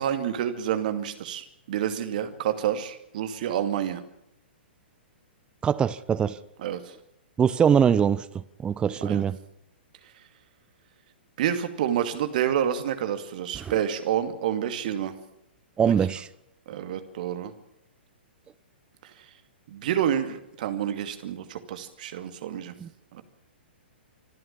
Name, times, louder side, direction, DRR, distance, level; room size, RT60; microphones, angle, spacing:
voice 1, 0.0-4.0 6.6-7.0 9.0-9.3 11.4-15.1 15.8-15.9 16.7-17.5 19.0-19.3 19.7-22.7 23.1-23.2, right 9 dB, 50° right, 2.5 m, -28 dB
voice 2, 5.6-6.4 7.4-8.2 8.6-9.4 13.6-13.7 15.8-16.3 22.8-22.9, right 7 dB, 15° right, 0.7 m, -22 dB
26.0 x 12.5 x 8.7 m
figure-of-eight pair, 110°, 6 cm